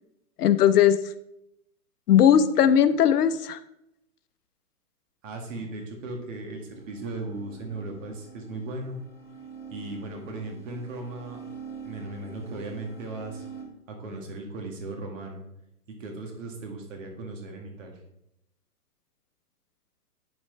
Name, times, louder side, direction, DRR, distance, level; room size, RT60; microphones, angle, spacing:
voice 1, 0.4-1.0 2.1-3.6, left 9 dB, 80° left, 12 dB, 0.7 m, -18 dB
voice 2, 5.2-9.0 9.7-11.4 11.8-13.5 13.9-15.4 16.0-18.0, right 2 dB, 55° right, 2 dB, 1.9 m, -37 dB
sound 1, 6.7-13.6, right 5 dB, 5° left, 1.8 m, -45 dB
10.5 x 4.4 x 3.3 m, 0.82 s
hypercardioid pair, 165°, 46 cm